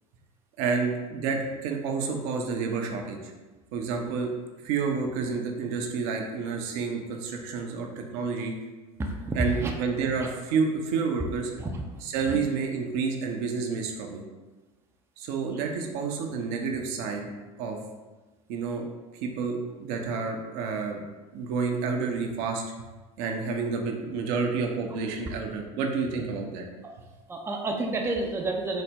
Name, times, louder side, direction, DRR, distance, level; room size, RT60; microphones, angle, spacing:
voice 1, 0.6-3.3 3.7-4.3 4.6-8.5 9.3-11.5 12.0-14.2 15.2-17.3 17.6-17.8 18.5-18.9 19.2-21.0 21.3-22.6 23.2-26.7, right 5 dB, 60° right, 2 dB, 0.6 m, -29 dB
voice 2, 9.0-10.3 11.6-12.4 26.8-26.9 27.3-28.8, right 2 dB, 15° right, 1 dB, 0.5 m, -31 dB
3.9 x 2.1 x 3.5 m, 1.2 s
hypercardioid pair, 75°, 18 cm